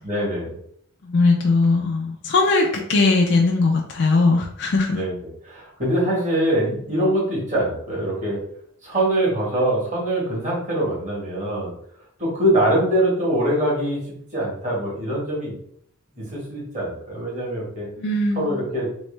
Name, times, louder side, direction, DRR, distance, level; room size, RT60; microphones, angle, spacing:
voice 1, 0.0-0.5 4.9-8.4 8.8-11.7 12.2-15.5 16.1-17.9 18.3-18.9, right 1 dB, 35° right, -5 dB, 1.5 m, -23 dB
voice 2, 1.0-5.0 18.0-18.6, left 3 dB, 50° left, 0 dB, 0.4 m, -19 dB
3.1 x 3.0 x 3.2 m, 0.68 s
head